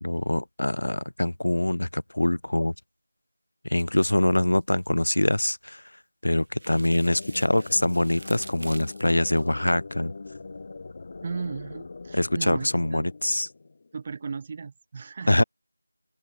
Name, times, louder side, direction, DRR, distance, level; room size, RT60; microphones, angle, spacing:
voice 1, 0.0-2.7 3.6-5.8 6.2-10.1 12.1-13.5 15.3-15.4, left 1 dB, 60° left, 1.5 m, -24 dB
sound 1, 3.8-4.8 6.4-9.5, right 1 dB, 45° right, 4.3 m, -46 dB
sound 2, 6.5-14.2, left 3 dB, 20° left, 2.9 m, -42 dB
voice 2, 11.2-13.1 13.9-15.4, right 5 dB, 10° right, 0.5 m, -36 dB
open air
figure-of-eight pair, 180°, 0 cm